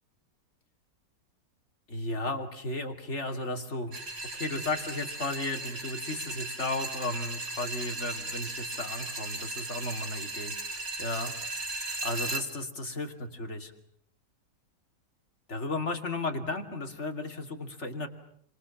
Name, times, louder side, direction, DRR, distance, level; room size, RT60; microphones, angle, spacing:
voice 1, 1.9-4.0 4.2-11.3 11.8-13.7 15.5-18.1, left 2 dB, 40° left, 4 dB, 3.0 m, -34 dB
sound 1, 3.9-12.4, right 2 dB, 50° right, 3.6 m, -37 dB
29.0 x 26.5 x 7.2 m, 0.67 s
omnidirectional pair, 1.9 m